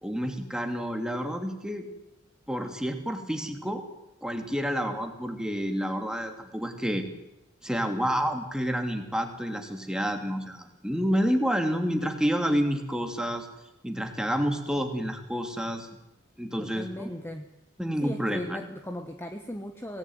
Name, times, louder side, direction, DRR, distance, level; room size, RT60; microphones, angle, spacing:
voice 1, 0.0-1.9 2.5-3.8 4.2-7.1 7.6-13.5 13.8-15.9 16.4-17.1 17.8-18.6, equal, 5° right, 5 dB, 2.9 m, -29 dB
voice 2, 16.6-17.5 18.0-20.0, left 1 dB, 10° left, 6 dB, 1.3 m, -37 dB
24.5 x 18.5 x 9.5 m, 0.90 s
head